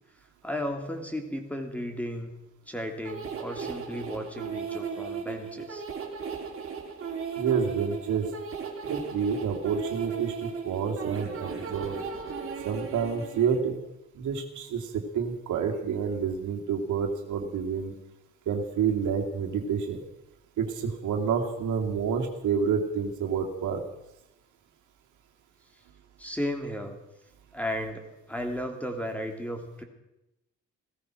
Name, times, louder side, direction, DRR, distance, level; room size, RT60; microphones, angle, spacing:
voice 1, 0.4-2.3 2.7-5.8 26.2-27.0 27.5-29.8, equal, 5° left, 5 dB, 2.9 m, -34 dB
sound 1, 3.0-13.6, right 6 dB, 45° right, 3.3 m, -36 dB
voice 2, 7.4-8.3 8.9-11.9 12.6-13.7 14.2-14.9 15.1-17.9 18.5-20.0 20.6-23.8, right 6 dB, 75° right, 3 dB, 2.4 m, -28 dB
16.5 x 14.0 x 6.2 m, 0.90 s
cardioid pair, 90°, 30 cm